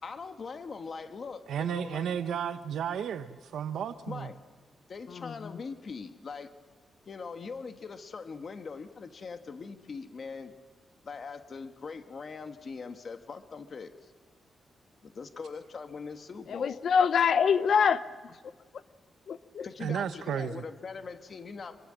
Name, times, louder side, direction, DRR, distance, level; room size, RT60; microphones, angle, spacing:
voice 1, 0.0-2.1 4.1-4.4 4.9-6.5 7.0-10.5 11.0-14.1 15.0-16.8 19.6-21.8, left 5 dB, 45° left, 1.4 m, -41 dB
voice 2, 1.5-4.3 19.8-20.6, right 8 dB, 90° right, 1.1 m, -33 dB
voice 3, 16.5-18.0 19.3-19.7, left 6 dB, 65° left, 0.9 m, -25 dB
27.0 x 23.5 x 7.7 m
wide cardioid pair, 130°, 0 cm